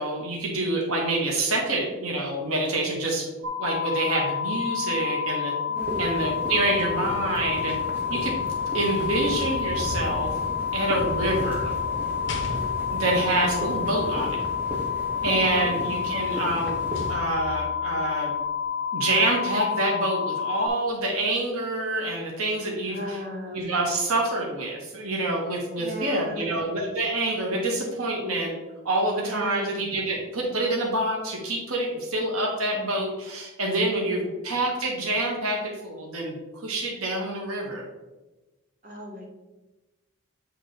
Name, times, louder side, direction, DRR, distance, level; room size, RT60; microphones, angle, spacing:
voice 1, 0.0-3.3 3.6-5.5 6.0-7.8 8.1-8.4 8.7-10.3 10.7-11.7 12.9-14.4 15.2-16.8 17.1-18.3 18.9-23.2 23.5-28.5 28.8-37.9, right 2 dB, 85° right, -1 dB, 1.1 m, -27 dB
sound 1, 3.4-20.7, left 7 dB, 65° right, 0.7 m, -29 dB
sound 2, 5.7-17.1, equal, 10° right, 1.0 m, -35 dB
voice 2, 5.7-6.2 15.2-15.8 22.8-23.6 25.8-26.6 29.2-29.7 34.0-34.3 38.8-39.2, equal, 40° right, -3 dB, 1.6 m, -36 dB
sound 3, 8.2-10.2 11.1-13.1 15.3-15.4 15.8-17.8 18.3-18.5, left 3 dB, 55° left, 0.8 m, -42 dB
8.0 x 3.0 x 4.0 m, 1.1 s
head